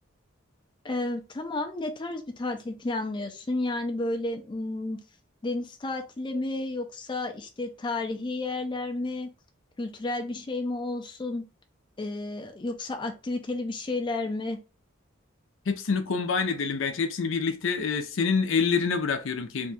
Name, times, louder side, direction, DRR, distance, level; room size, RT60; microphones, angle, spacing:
voice 1, 0.8-5.0 5.4-9.3 9.8-11.5 12.0-14.6, left 2 dB, 25° left, 0.4 m, -31 dB
voice 2, 15.7-19.7, left 5 dB, 75° left, 0.5 m, -26 dB
2.6 x 2.3 x 4.0 m
head